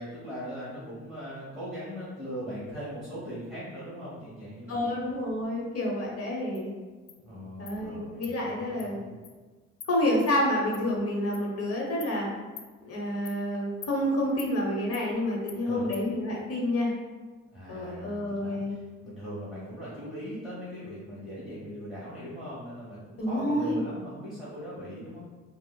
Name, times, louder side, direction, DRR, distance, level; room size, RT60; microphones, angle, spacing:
voice 1, 0.0-4.8 7.2-9.1 15.6-15.8 17.5-25.2, equal, ahead, -10 dB, 1.0 m, -40 dB
voice 2, 4.7-6.7 7.6-9.0 9.9-12.3 12.8-16.9 17.7-18.7 23.2-23.8, left 1 dB, 50° left, -2 dB, 0.9 m, -29 dB
Insect, 6.5-6.6 7.1-7.2 7.7-7.8 8.2-8.3 8.8-8.9 9.2-9.3 9.8-9.9 10.3-10.4 10.7-10.8 11.3-11.4 12.0-12.1 12.6-12.7 13.3-13.4 13.8-13.9 14.4-14.5 14.9-15.0 15.5-15.6 15.9-16.0, left 8 dB, 70° left, 0.5 m, -44 dB
4.8 x 2.1 x 2.2 m, 1.3 s
cardioid pair, 90°, 30 cm